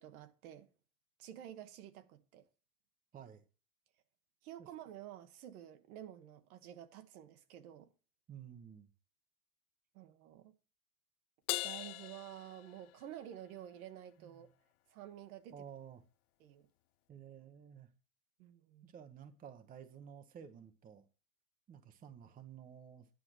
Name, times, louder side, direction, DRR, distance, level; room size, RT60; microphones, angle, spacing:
voice 1, 0.0-0.7 1.2-2.4 4.4-7.9 9.9-10.5 11.6-14.5 14.9-15.6 16.4-16.7 18.4-18.9, right 11 dB, 65° right, 1.3 m, -51 dB
voice 2, 3.1-3.4 4.6-4.7 8.3-8.9 14.2-14.5 15.5-16.0 17.1-17.9 18.8-21.1 21.7-23.1, right 8 dB, 20° right, 0.8 m, -53 dB
Crash cymbal, 11.5-13.2, left 18 dB, 70° left, 0.6 m, -40 dB
10.0 x 5.1 x 6.1 m
supercardioid pair, 125°, 46 cm